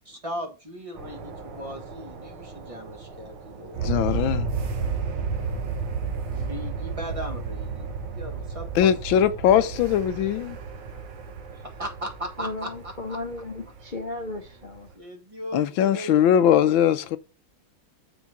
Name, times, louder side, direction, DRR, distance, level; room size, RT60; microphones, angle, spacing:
voice 1, 0.0-4.3 6.3-9.3 9.6-9.7 11.5-13.2 14.9-16.7, equal, 20° right, 1.3 m, -38 dB
sound 1, 1.0-14.9, right 5 dB, 90° right, 2.1 m, -33 dB
voice 2, 3.8-4.5 8.7-10.6 15.5-17.2, left 10 dB, 75° left, 1.4 m, -21 dB
voice 3, 12.4-14.9, left 2 dB, 55° left, 0.5 m, -35 dB
7.2 x 6.0 x 4.0 m
omnidirectional pair, 2.3 m